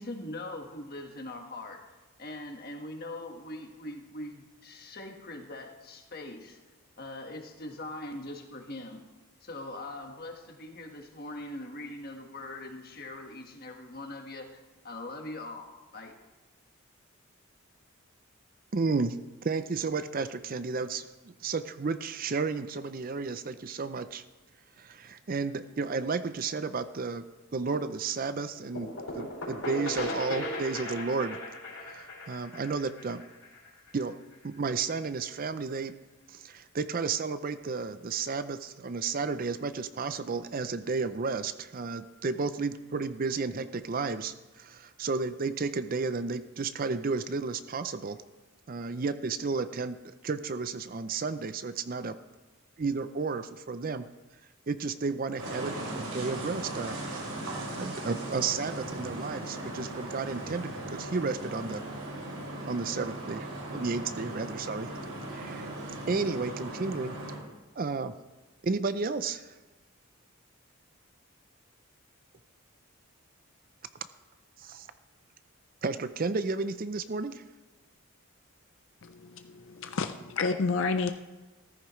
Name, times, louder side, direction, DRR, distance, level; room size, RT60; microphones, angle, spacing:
voice 1, 0.0-1.8 2.2-6.6 7.0-9.0 9.4-16.1, left 1 dB, 45° left, 3 dB, 1.4 m, -41 dB
voice 2, 18.7-19.2 19.4-24.2 24.8-27.3 27.5-31.4 31.9-33.2 33.9-34.1 34.4-35.9 36.3-48.2 48.7-52.2 52.8-54.0 54.7-57.0 57.8-61.8 62.7-64.9 65.3-65.7 66.1-67.2 67.8-68.2 68.6-69.5 74.6-74.9 75.8-77.4, right 4 dB, 40° right, 12 dB, 0.5 m, -32 dB
sound 1, 28.7-34.3, left 1 dB, 80° left, 4.4 m, -37 dB
sound 2, 55.4-67.4, right 1 dB, 85° right, 3.7 m, -38 dB
voice 3, 79.0-81.1, left 4 dB, 60° left, 8 dB, 0.5 m, -30 dB
14.5 x 14.0 x 3.1 m, 1.2 s
head